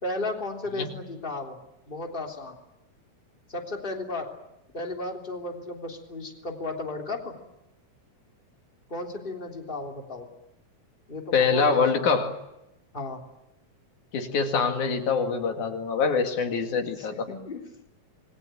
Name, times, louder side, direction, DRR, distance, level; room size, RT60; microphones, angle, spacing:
voice 1, 0.0-1.6 1.9-2.6 3.5-4.3 4.7-7.3 8.9-10.3 11.1-12.1 12.9-13.2 17.0-17.6, left 2 dB, 15° left, 2 dB, 3.4 m, -34 dB
voice 2, 11.3-12.4 14.1-17.3, left 5 dB, 85° left, 5 dB, 3.6 m, -24 dB
27.0 x 22.0 x 9.1 m, 0.90 s
omnidirectional pair, 3.3 m